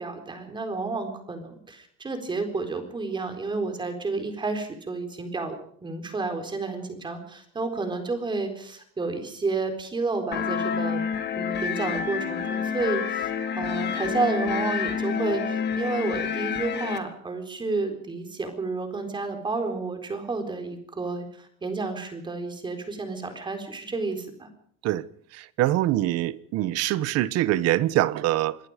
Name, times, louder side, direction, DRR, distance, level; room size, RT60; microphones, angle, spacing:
voice 1, 0.0-11.0 11.4-24.5, right 3 dB, 15° right, 4.2 m, -31 dB
sound 1, 10.3-17.0, left 7 dB, 35° left, 2.4 m, -28 dB
voice 2, 25.6-28.6, right 15 dB, 60° right, 1.1 m, -24 dB
26.0 x 21.0 x 5.1 m
cardioid pair, 170°, 29 cm